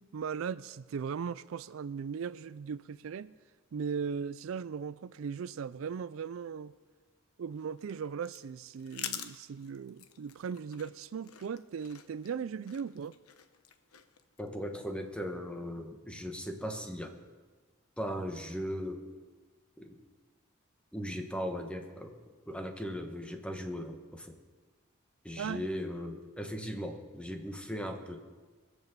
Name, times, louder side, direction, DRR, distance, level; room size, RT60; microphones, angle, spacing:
voice 1, 0.0-3.3 3.7-6.7 7.4-13.2 25.4-25.7, right 6 dB, 65° right, 0.4 m, -38 dB
sound 1, 7.5-14.4, left 10 dB, 90° left, 1.0 m, -47 dB
voice 2, 14.4-17.2 18.0-19.0 19.8-20.0 20.9-22.2 22.5-24.4 25.2-28.3, equal, 5° left, 1.3 m, -38 dB
21.5 x 8.1 x 7.2 m
head